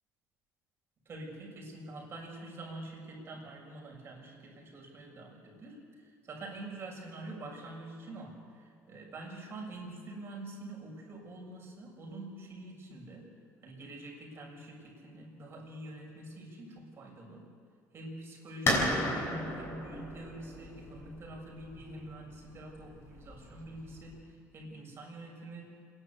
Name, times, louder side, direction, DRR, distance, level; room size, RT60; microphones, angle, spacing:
voice 1, 1.1-5.8 6.2-13.3 13.6-17.4 17.9-25.7, right 2 dB, 40° right, -2 dB, 6.9 m, -46 dB
sound 1, 18.7-24.1, left 1 dB, 40° left, 6.9 m, -34 dB
27.0 x 11.5 x 8.4 m, 2.1 s
cardioid pair, 110°, 6 cm